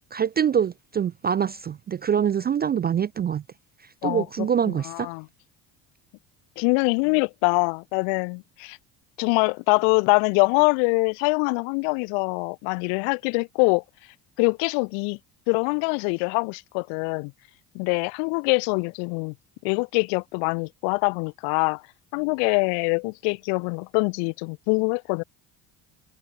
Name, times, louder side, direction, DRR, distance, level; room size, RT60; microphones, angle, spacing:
voice 1, 0.0-3.4 4.0-5.1, right 8 dB, 20° right, 0.3 m, -25 dB
voice 2, 4.0-5.2 6.6-8.8 9.2-13.8 14.4-15.2 15.5-17.3 17.7-19.3 19.6-21.8 22.1-25.2, left 39 dB, 70° left, 1.2 m, -24 dB
hypercardioid pair, 70°, 50 cm